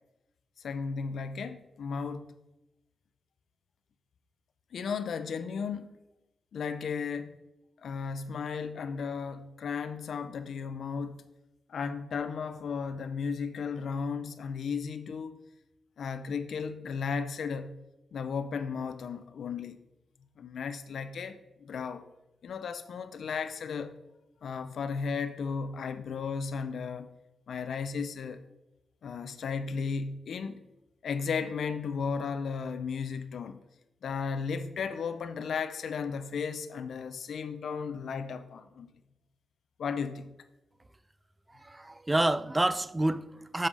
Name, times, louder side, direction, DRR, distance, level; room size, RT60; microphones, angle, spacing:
voice 1, 0.6-2.3 4.7-6.0 6.5-7.4 7.8-11.2 11.7-15.4 16.0-17.7 18.1-19.8 20.4-22.0 22.4-23.9 24.4-27.1 27.5-28.4 29.0-30.6 31.0-33.6 34.0-38.9 39.8-40.3, left 5 dB, 65° left, 0.6 m, -35 dB
voice 2, 41.5-43.7, right 1 dB, 15° right, 0.3 m, -28 dB
7.7 x 5.5 x 4.9 m
wide cardioid pair, 140°, 0 cm